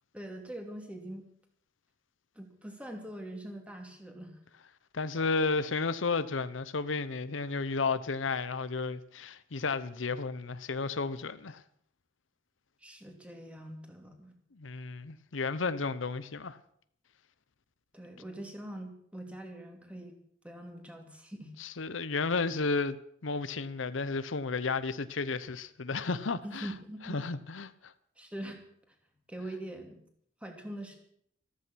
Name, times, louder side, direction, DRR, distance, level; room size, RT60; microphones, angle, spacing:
voice 1, 0.1-1.3 2.3-4.4 12.8-14.4 17.9-20.2 20.4-21.5 26.4-27.2 28.2-28.6 29.3-30.0 30.4-30.9, right 1 dB, 5° right, 2.8 m, -43 dB
voice 2, 4.9-11.6 14.5-16.6 21.6-26.7 27.0-27.9, left 4 dB, 90° left, 0.8 m, -33 dB
14.0 x 14.0 x 6.3 m
head